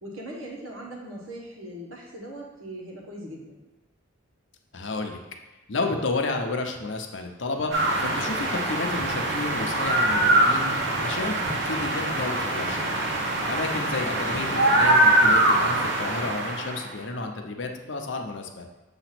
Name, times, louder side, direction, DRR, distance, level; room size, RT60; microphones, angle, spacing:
voice 1, 0.0-3.6, right 1 dB, 85° right, -2 dB, 1.6 m, -40 dB
voice 2, 4.7-5.2 5.7-12.9 13.4-18.7, left 3 dB, 65° left, 3 dB, 0.8 m, -31 dB
sound 1, 7.7-16.9, right 1 dB, 60° right, 1.2 m, -23 dB
7.1 x 3.0 x 5.9 m, 1.2 s
head